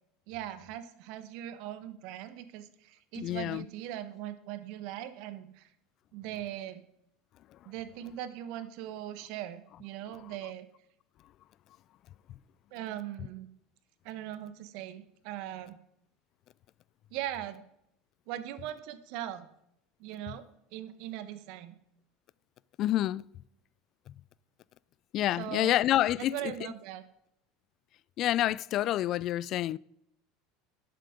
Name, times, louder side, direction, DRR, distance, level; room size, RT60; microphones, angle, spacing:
voice 1, 0.3-5.7 6.1-6.8 7.6-10.7 12.7-13.5 14.0-15.8 17.1-17.6 18.3-19.5 20.0-21.8 25.4-25.7 26.2-27.0, right 12 dB, 65° right, 1.2 m, -40 dB
voice 2, 3.1-3.7 22.8-23.3 25.1-26.5 28.2-29.8, left 13 dB, 50° left, 0.3 m, -28 dB
11.5 x 7.6 x 5.1 m
supercardioid pair, 105°, 0 cm